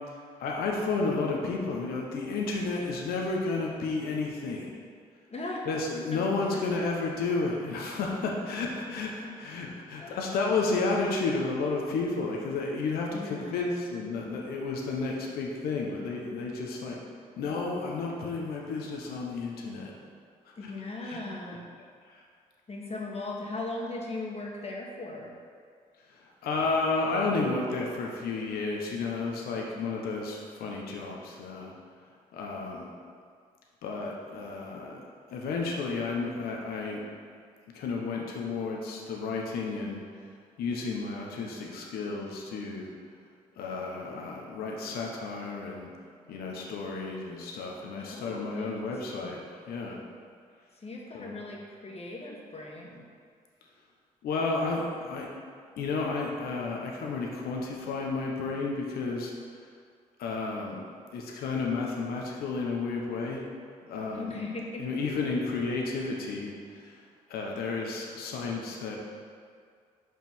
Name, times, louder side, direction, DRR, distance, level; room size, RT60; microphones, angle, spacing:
voice 1, 0.4-4.8 5.7-17.0 17.4-20.0 20.5-20.7 21.0-21.2 22.1-22.2 26.1-31.7 32.3-32.9 33.8-35.0 35.3-37.0 37.7-40.0 40.6-42.9 43.6-45.9 46.3-49.4 49.7-50.1 51.1-51.4 54.2-55.3 55.8-59.3 60.2-60.8 61.1-63.5 63.9-64.3 64.8-67.0 67.3-69.0, left 3 dB, 80° left, -1 dB, 1.0 m, -32 dB
voice 2, 5.3-5.6 6.1-6.2 6.5-6.6 10.0-10.2 13.1-13.9 20.6-21.7 22.7-25.3 29.8-30.1 48.0-48.7 49.1-49.5 50.8-53.0 64.1-64.8, left 2 dB, 40° left, -2 dB, 1.5 m, -38 dB
5.3 x 4.8 x 6.0 m, 2.1 s
hypercardioid pair, 50°, 16 cm